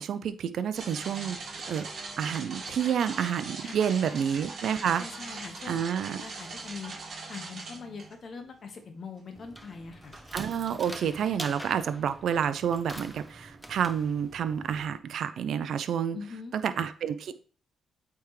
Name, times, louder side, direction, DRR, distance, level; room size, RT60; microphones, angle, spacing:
voice 1, 0.0-1.4 1.7-1.9 2.2-6.2 10.3-16.2 16.5-17.5, right 8 dB, 70° right, 11 dB, 0.5 m, -29 dB
sound 1, 0.7-8.2 8.8-8.9 10.0-10.5, right 3 dB, 55° right, 1.9 m, -41 dB
voice 2, 5.0-6.9 7.3-10.1 16.1-16.5, left 5 dB, 50° left, 5 dB, 1.3 m, -42 dB
sound 2, 9.3-15.0, equal, ahead, 0.7 m, -45 dB
8.4 x 3.5 x 3.2 m, 0.40 s
cardioid pair, 85°, 0 cm